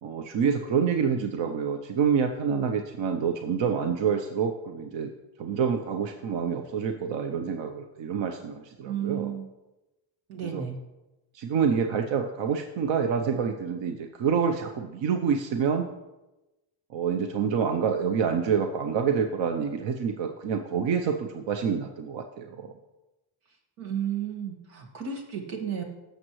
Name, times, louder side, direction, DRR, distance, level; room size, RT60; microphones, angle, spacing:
voice 1, 0.0-5.1 5.4-9.3 10.4-10.6 11.3-15.9 16.9-22.7, right 6 dB, 65° right, 5 dB, 0.8 m, -27 dB
voice 2, 8.8-9.5 10.3-10.8 23.8-25.8, right 8 dB, 90° right, 1 dB, 1.9 m, -32 dB
16.5 x 6.6 x 3.1 m, 1.0 s
cardioid pair, 90°, 48 cm